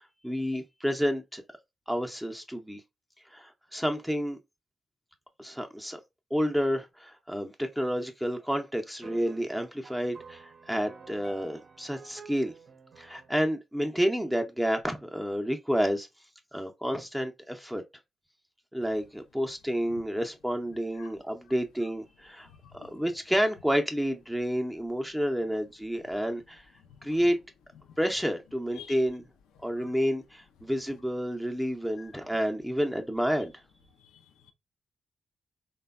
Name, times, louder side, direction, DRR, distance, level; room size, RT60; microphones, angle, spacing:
voice 1, 0.0-1.4 1.9-2.8 3.3-4.4 5.4-6.0 6.3-12.5 13.0-16.1 16.5-17.8 18.7-22.5 22.8-26.6 27.0-27.4 28.0-29.2 29.6-33.5, equal, 5° right, 0.5 m, -30 dB
sound 1, 9.0-13.4, right 5 dB, 55° right, 0.6 m, -50 dB
voice 2, 22.4-22.9 26.8-27.2 27.8-28.0 28.7-29.0 29.6-29.9 32.0-32.1 34.0-34.5, left 9 dB, 85° left, 0.4 m, -51 dB
3.2 x 2.2 x 2.3 m
supercardioid pair, 45°, 0 cm